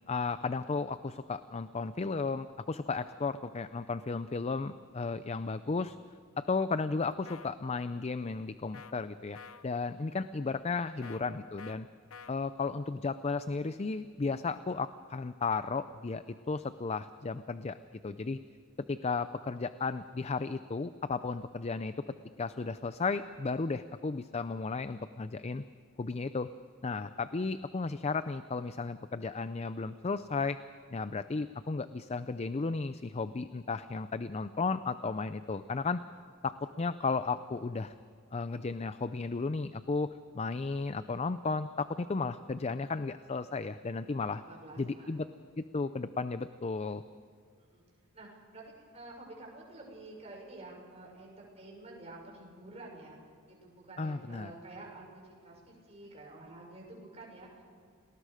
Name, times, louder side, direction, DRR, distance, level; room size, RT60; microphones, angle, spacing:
voice 1, 0.1-6.0 6.4-9.4 9.6-11.9 12.3-17.8 18.0-18.4 18.9-21.9 22.4-25.6 26.0-26.5 26.8-30.6 30.9-36.0 36.4-37.9 38.3-40.1 40.3-44.4 44.8-45.3 45.6-47.0 54.0-54.5, left 4 dB, 30° left, 12 dB, 0.5 m, -34 dB
sound 1, 7.2-7.5 8.7-8.9 9.3-9.7 11.0-11.2 11.6-11.8 12.1-12.3, left 6 dB, 75° left, 0.9 m, -48 dB
voice 2, 10.0-10.3 10.9-11.3 27.3-27.5 43.9-45.2 47.6-47.8 48.1-53.2 53.5-57.6, right 2 dB, 30° right, -1 dB, 6.2 m, -50 dB
29.5 x 19.5 x 5.0 m, 2.2 s
head